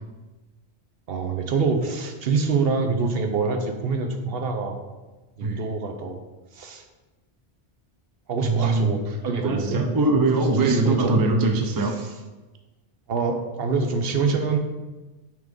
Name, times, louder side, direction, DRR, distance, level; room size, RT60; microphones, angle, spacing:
voice 1, 1.1-4.8 5.4-6.2 6.5-6.8 8.3-9.8 10.3-11.3 11.8-12.1 13.1-14.6, right 4 dB, 60° right, 5 dB, 0.9 m, -25 dB
voice 2, 8.4-9.0 9.4-11.9, right 3 dB, 30° right, 4 dB, 0.4 m, -22 dB
5.9 x 3.7 x 5.2 m, 1.2 s
omnidirectional pair, 1.2 m